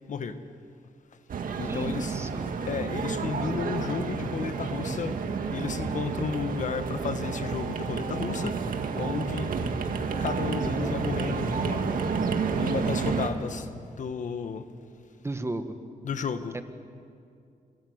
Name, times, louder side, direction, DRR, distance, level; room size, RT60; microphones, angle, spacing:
voice 1, 0.1-0.4 1.6-2.1 2.7-5.2 5.5-9.6 10.2-11.8 12.6-13.7 14.0-14.7 16.0-16.6, left 6 dB, 60° left, 1.4 m, -33 dB
sound 1, 1.3-13.3, right 5 dB, 75° right, 2.1 m, -30 dB
voice 2, 1.7-2.5 15.2-15.7 16.5-16.6, right 2 dB, 20° right, 1.4 m, -34 dB
26.5 x 24.5 x 8.1 m
wide cardioid pair, 125°, 14 cm